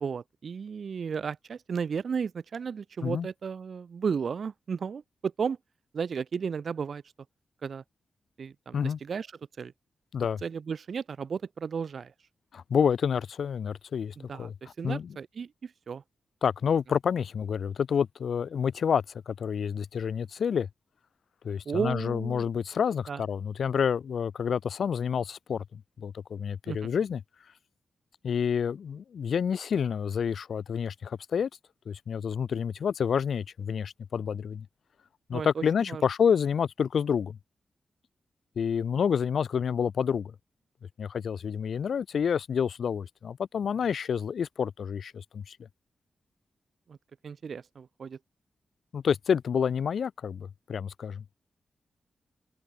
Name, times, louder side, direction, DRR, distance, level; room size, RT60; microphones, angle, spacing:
voice 1, 0.0-5.6 5.9-7.0 7.6-7.8 8.4-9.3 9.6-9.7 10.4-12.1 14.2-14.5 14.8-16.0 21.7-22.4 23.1-23.2 26.7-26.9 35.3-36.0 46.9-47.0 47.2-48.2, right 6 dB, 65° right, 0.5 m, -34 dB
voice 2, 12.5-14.5 14.8-15.1 16.4-20.7 21.4-27.2 28.2-31.5 31.9-34.7 35.3-37.4 38.6-40.3 41.0-45.6 48.9-51.2, left 7 dB, 75° left, 0.5 m, -28 dB
wide cardioid pair, 110°, 0 cm